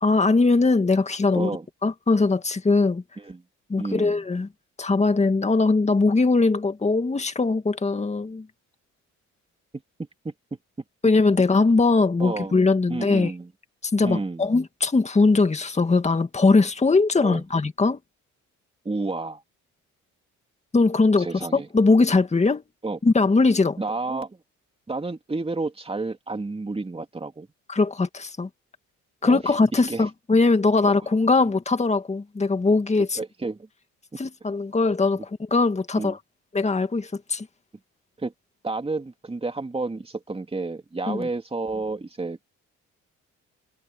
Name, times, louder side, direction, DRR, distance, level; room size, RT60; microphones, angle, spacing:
voice 1, 0.0-1.5 1.8-3.0 3.7-4.5 4.8-8.5 11.0-13.3 13.8-18.0 20.7-22.6 23.0-23.8 27.7-28.5 29.2-33.2 34.2-36.2 36.5-37.5 41.1-41.3, left 3 dB, 20° left, 2.0 m, -21 dB
voice 2, 1.3-1.6 3.2-3.4 3.8-4.2 10.2-10.3 12.2-12.6 12.9-13.5 14.0-14.5 17.2-17.4 18.8-19.4 21.2-21.7 22.8-23.0 23.8-24.4 24.9-27.5 29.2-30.0 33.2-33.7 34.1-34.2 36.0-36.2 38.2-38.3 38.6-42.4, right 3 dB, 20° right, 3.1 m, -30 dB
cardioid pair, 90°, 30 cm